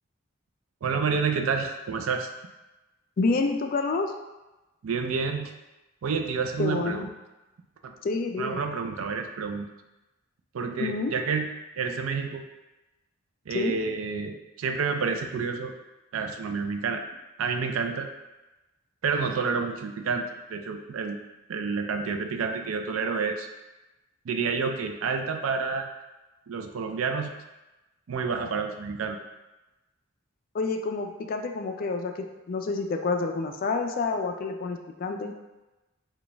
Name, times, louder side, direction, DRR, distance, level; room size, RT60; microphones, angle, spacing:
voice 1, 0.8-2.3 4.8-5.5 6.0-7.1 8.4-9.7 10.5-11.5 11.8-12.4 13.5-15.7 16.1-17.0 17.4-18.1 19.0-21.2 21.5-23.5 24.2-25.9 26.5-27.3 28.1-29.2, right 5 dB, 90° right, 5 dB, 0.4 m, -29 dB
voice 2, 3.2-4.1 6.6-7.1 8.0-8.6 10.8-11.1 13.5-13.8 30.5-35.4, left 3 dB, 45° left, 5 dB, 0.3 m, -28 dB
4.0 x 2.3 x 3.3 m, 1.0 s
head